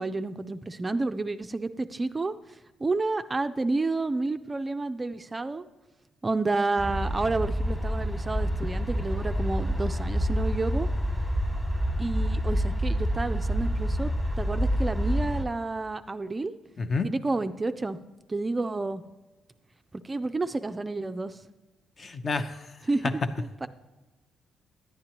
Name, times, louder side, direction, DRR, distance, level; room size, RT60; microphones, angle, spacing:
voice 1, 0.0-2.3 2.8-5.6 6.2-10.9 12.0-14.1 14.4-16.5 17.0-18.0 18.3-19.0 20.0-21.4 22.9-23.1 23.4-23.7, right 3 dB, 25° right, 9 dB, 0.4 m, -30 dB
sound 1, 6.8-15.4, equal, 5° left, 1.2 m, -28 dB
voice 2, 22.0-22.7, left 4 dB, 40° left, 9 dB, 0.6 m, -29 dB
10.5 x 8.9 x 2.9 m, 1.2 s
cardioid pair, 90°, 0 cm